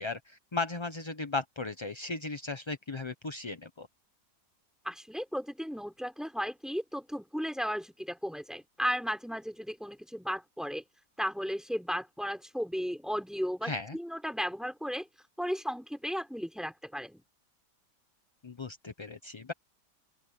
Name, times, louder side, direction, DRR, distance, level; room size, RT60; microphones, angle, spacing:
voice 1, 0.0-3.9 13.6-14.0 18.4-19.5, left 3 dB, 25° left, 0.6 m, -36 dB
voice 2, 4.8-10.8 11.2-15.1 15.4-17.2, equal, ahead, 3.7 m, -35 dB
open air
omnidirectional pair, 1.8 m